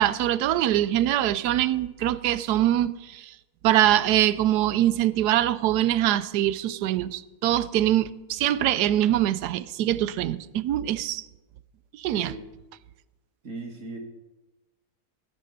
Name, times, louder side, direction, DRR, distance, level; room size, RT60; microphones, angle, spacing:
voice 1, 0.0-3.3 3.6-11.3 12.0-12.3, right 13 dB, 90° right, 1.2 m, -23 dB
voice 2, 12.1-12.4 13.4-14.0, right 2 dB, 55° right, 2.2 m, -37 dB
17.0 x 11.5 x 4.0 m
omnidirectional pair, 1.7 m